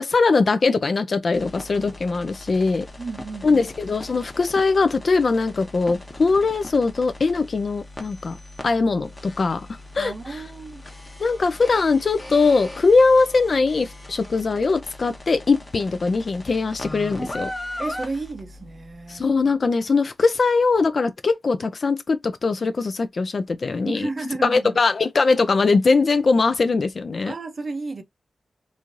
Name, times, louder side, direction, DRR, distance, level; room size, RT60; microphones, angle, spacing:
voice 1, 0.0-2.9 3.4-8.4 8.6-9.7 9.9-10.4 11.2-17.5 19.1-24.1 24.4-27.3, left 4 dB, 55° left, 0.3 m, -21 dB
sound 1, 1.3-19.2, left 1 dB, 25° left, 0.8 m, -39 dB
voice 2, 3.0-3.6 10.0-10.8 17.8-19.3 23.8-24.8 27.2-28.0, right 3 dB, 45° right, 0.5 m, -32 dB
3.0 x 2.4 x 2.5 m
wide cardioid pair, 85°, 0 cm